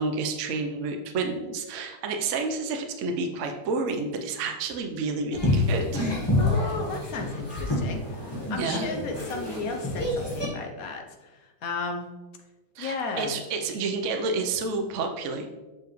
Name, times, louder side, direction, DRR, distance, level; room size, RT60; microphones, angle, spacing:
voice 1, 0.0-6.0 8.6-8.9 12.8-15.5, right 3 dB, 70° right, 4 dB, 0.7 m, -30 dB
sound 1, 5.3-10.5, left 1 dB, 15° left, 1.1 m, -28 dB
voice 2, 6.4-12.1 12.8-13.3, left 4 dB, 60° left, 3 dB, 0.9 m, -34 dB
6.9 x 5.9 x 3.1 m, 1.2 s
omnidirectional pair, 2.2 m